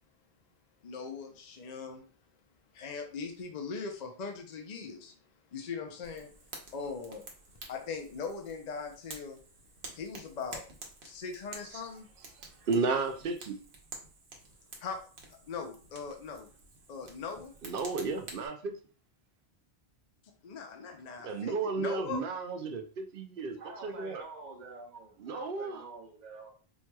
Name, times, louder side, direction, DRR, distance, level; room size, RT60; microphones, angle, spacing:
voice 1, 0.8-2.0 2.7-5.1 5.5-6.3 6.7-7.3 7.7-9.4 9.9-10.6 11.0-12.1 14.8-15.0 15.3-16.5 16.9-17.5 20.4-22.2, left 5 dB, 50° left, 4 dB, 0.6 m, -40 dB
Fire, 6.0-18.5, right 3 dB, 80° right, 1.1 m, -50 dB
voice 2, 12.4-13.6 17.6-18.8 21.2-24.2 25.2-25.8, right 4 dB, 65° right, 5 dB, 0.7 m, -33 dB
voice 3, 23.6-26.5, right 3 dB, 45° right, 0 dB, 1.0 m, -47 dB
4.5 x 2.9 x 2.2 m, 0.40 s
omnidirectional pair, 1.1 m